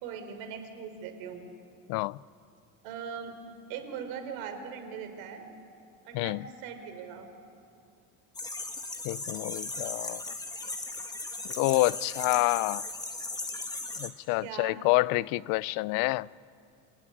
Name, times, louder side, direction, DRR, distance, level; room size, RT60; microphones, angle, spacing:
voice 1, 0.0-1.5 2.8-3.4 3.7-5.4 6.1-7.3 14.4-14.8, right 7 dB, 85° right, 4.0 m, -40 dB
voice 2, 1.9-2.2 6.1-6.4 9.0-10.3 11.4-12.8 14.0-16.3, left 21 dB, 80° left, 0.6 m, -28 dB
sound 1, 8.3-14.1, left 2 dB, 10° left, 1.8 m, -37 dB
27.0 x 19.0 x 10.0 m
cardioid pair, 140°, 34 cm